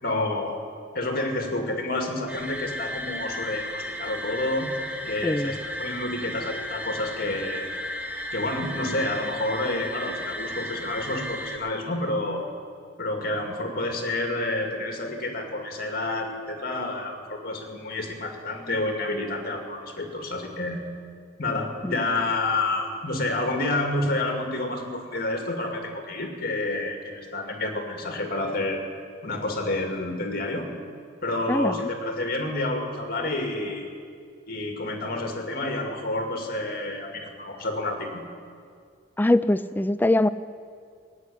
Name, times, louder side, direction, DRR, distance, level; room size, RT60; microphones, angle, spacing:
voice 1, 0.0-0.6 0.9-4.7 5.1-7.7 8.3-12.5 13.0-20.8 21.4-28.9 29.2-30.7 31.2-33.9 34.5-38.2, left 2 dB, 50° left, 2 dB, 2.2 m, -29 dB
sound 1, 2.3-11.6, equal, 5° right, 1.0 m, -34 dB
voice 2, 5.2-5.6 21.8-22.0 31.5-31.8 39.2-40.3, left 1 dB, 10° left, 14 dB, 0.3 m, -22 dB
17.5 x 8.2 x 9.9 m, 2.2 s
head